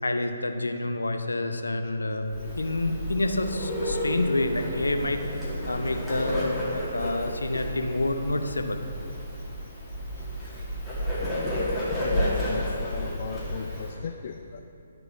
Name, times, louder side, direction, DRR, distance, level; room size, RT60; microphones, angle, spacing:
voice 1, 0.0-2.3 2.5-5.2 5.6-8.8, left 2 dB, 85° left, 6 dB, 0.7 m, -28 dB
Bird, 2.3-13.9, equal, 5° left, 2.1 m, -31 dB
voice 2, 12.0-14.6, left 6 dB, 50° left, 5 dB, 0.4 m, -36 dB
12.0 x 4.9 x 4.7 m, 2.7 s
figure-of-eight pair, 140°, 0 cm